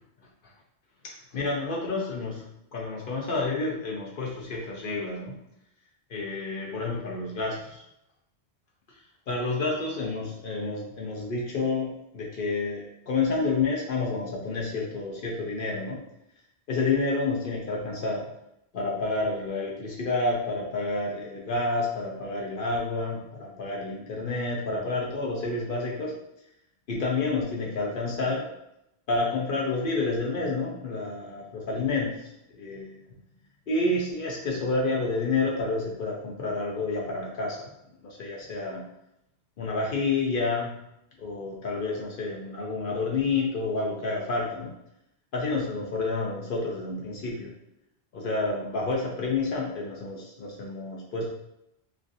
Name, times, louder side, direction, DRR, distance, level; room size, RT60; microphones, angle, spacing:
voice 1, 1.0-2.4 2.7-5.4 6.1-7.8 9.3-16.0 16.7-18.2 18.7-26.2 26.9-28.5 29.1-33.0 33.7-37.7 38.0-38.9 39.6-40.7 41.2-44.7 45.3-47.5 48.1-51.3, left 3 dB, 60° left, -2 dB, 0.7 m, -29 dB
3.1 x 2.5 x 2.5 m, 0.82 s
omnidirectional pair, 1.1 m